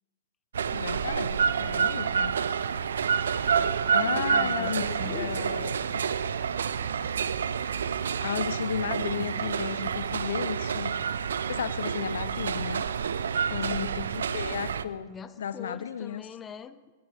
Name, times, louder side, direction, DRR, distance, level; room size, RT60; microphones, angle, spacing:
sound 1, 0.5-14.8, right 7 dB, 80° right, 0.6 m, -28 dB
voice 1, 0.7-2.3 3.9-5.8 8.2-10.9 11.4-12.8 13.5-15.1 15.4-16.3, left 8 dB, 75° left, 15 dB, 0.6 m, -34 dB
voice 2, 3.5-5.4 9.2-9.9 13.7-13.9 15.1-16.9, left 7 dB, 20° left, 13 dB, 0.9 m, -43 dB
20.5 x 14.5 x 3.5 m, 1.3 s
hypercardioid pair, 110°, 0 cm